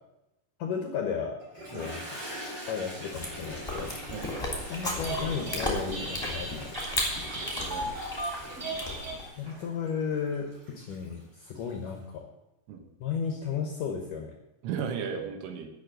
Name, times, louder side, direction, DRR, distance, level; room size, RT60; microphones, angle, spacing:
voice 1, 0.6-1.3 1.7-2.2 2.7-3.9 4.7-6.9 9.4-12.3 13.0-14.4, left 6 dB, 75° left, 2 dB, 1.9 m, -34 dB
Toilet flush, 1.4-12.0, equal, 50° right, 6.3 m, -44 dB
Chewing mastication, 3.1-9.2, left 1 dB, 10° left, 1.9 m, -35 dB
voice 2, 4.1-4.4 7.3-7.9 12.7-12.9 14.6-15.7, right 7 dB, 90° right, 5 dB, 3.8 m, -36 dB
Telephone, 5.0-5.6 5.9-9.6, right 2 dB, 15° right, 3.2 m, -36 dB
11.0 x 6.8 x 7.8 m, 0.89 s
omnidirectional pair, 5.3 m